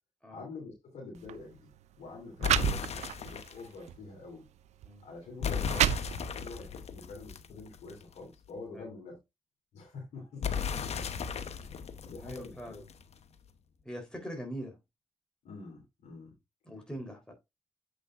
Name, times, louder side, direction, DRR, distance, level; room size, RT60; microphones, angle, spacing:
voice 1, 0.3-1.7 2.0-4.5 5.0-5.9 6.2-9.2 9.7-11.1 11.4-11.7 12.0-12.8 15.4-16.4, left 3 dB, 85° left, 3.1 m, -46 dB
sound 1, 1.2-1.4 2.1-2.2 2.4-3.3 3.9-4.1 4.8-4.9 5.4-6.6, right 11 dB, 85° right, 0.5 m, -29 dB
sound 2, 2.4-3.7 5.4-8.1 10.4-13.1, left 7 dB, 70° left, 1.0 m, -36 dB
voice 2, 12.2-12.8 13.8-14.8 16.6-17.3, equal, 5° left, 3.8 m, -42 dB
7.7 x 6.3 x 2.5 m
supercardioid pair, 40°, 11 cm